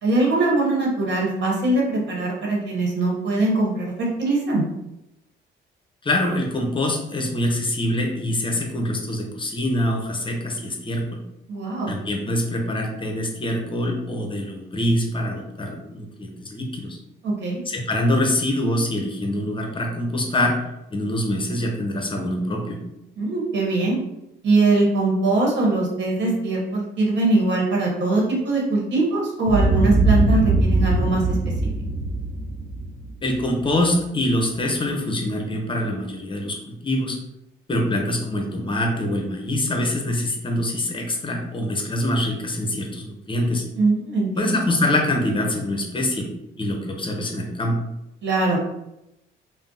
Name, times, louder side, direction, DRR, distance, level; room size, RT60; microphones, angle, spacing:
voice 1, 0.0-4.6 11.5-11.9 17.2-17.6 23.2-24.0 24.4-31.4 43.7-44.6 48.2-48.6, right 2 dB, 65° right, -2 dB, 1.0 m, -22 dB
voice 2, 6.0-11.2 11.9-17.0 17.7-20.6 20.9-22.8 33.2-37.2 37.7-43.6 44.4-46.3 46.6-47.8, left 1 dB, 25° left, 2 dB, 0.6 m, -24 dB
Boom, 29.4-33.7, right 2 dB, 40° right, 0.6 m, -21 dB
2.5 x 2.0 x 3.8 m, 0.88 s
cardioid pair, 90°, 20 cm